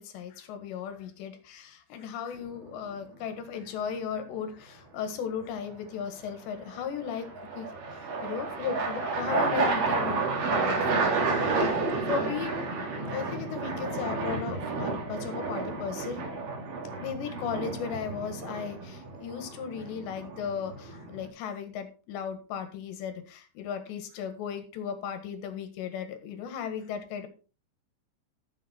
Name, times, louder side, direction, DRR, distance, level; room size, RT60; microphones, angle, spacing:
voice 1, 0.0-7.3 7.5-11.8 12.1-12.5 13.1-16.2 17.0-27.3, left 7 dB, 65° left, 8 dB, 3.5 m, -36 dB
sound 1, 2.4-2.9 6.7-21.3, right 3 dB, 50° right, 3.7 m, -31 dB
13.5 x 7.2 x 4.3 m, 0.35 s
omnidirectional pair, 5.8 m